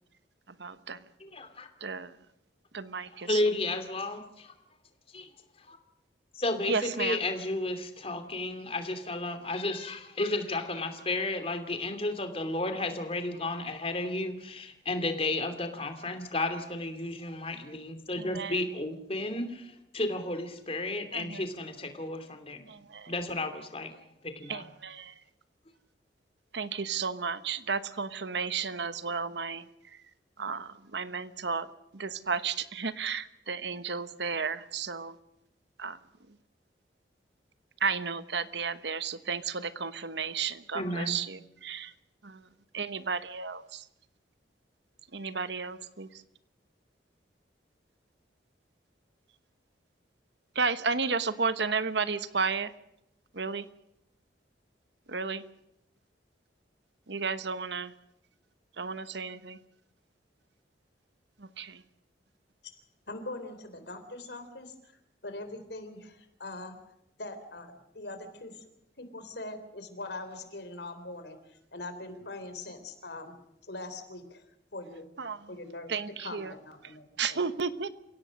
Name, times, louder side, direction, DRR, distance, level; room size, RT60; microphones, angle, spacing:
voice 1, 0.6-1.0 1.8-2.2 2.7-3.4 6.7-7.2 18.2-18.6 21.1-21.4 22.7-23.1 24.5-25.2 26.5-30.0 30.4-31.7 31.9-35.2 35.8-36.0 36.3-36.4 37.8-41.9 42.2-42.5 42.7-43.9 45.1-46.2 50.5-52.7 53.3-53.7 55.1-55.4 57.1-57.9 58.8-59.6 61.4-61.8 75.2-75.5 75.9-76.5 77.2-77.9, right 5 dB, 70° right, 13 dB, 1.2 m, -33 dB
voice 2, 1.2-1.7 3.2-4.5 5.1-5.3 5.6-5.8 6.3-22.6 23.1-23.9 24.2-24.6 40.7-41.2, left 2 dB, 30° left, 8 dB, 2.7 m, -33 dB
voice 3, 63.1-64.9 65.2-66.8 67.2-68.5 69.0-73.3 73.6-74.4 74.7-75.1 75.5-75.9 76.2-77.4, left 2 dB, 65° left, 8 dB, 3.6 m, -42 dB
29.0 x 17.0 x 6.5 m, 0.81 s
head